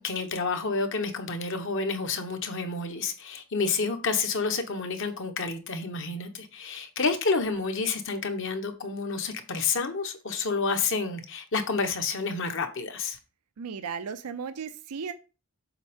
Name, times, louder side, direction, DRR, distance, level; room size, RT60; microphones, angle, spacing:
voice 1, 0.0-13.2, left 4 dB, 55° left, 1.0 m, -29 dB
voice 2, 13.6-15.1, right 6 dB, 90° right, 0.5 m, -35 dB
7.3 x 4.2 x 3.6 m
head